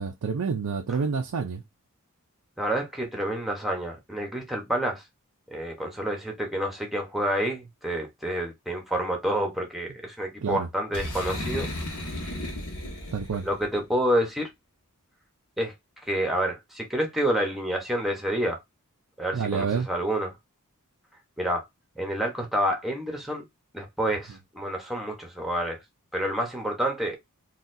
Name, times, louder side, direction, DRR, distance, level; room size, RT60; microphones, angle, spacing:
voice 1, 0.0-1.6 10.4-10.7 13.1-13.4 19.3-19.9, right 5 dB, 85° right, 0.5 m, -28 dB
voice 2, 2.6-5.0 5.5-11.7 12.1-12.4 13.4-14.5 15.6-15.7 16.1-18.6 19.2-20.4 21.4-21.6 22.0-23.4 23.7-25.8 26.1-27.2, right 1 dB, ahead, 0.9 m, -28 dB
Boom, 10.9-13.7, left 1 dB, 75° left, 1.1 m, -34 dB
3.9 x 2.4 x 2.6 m
head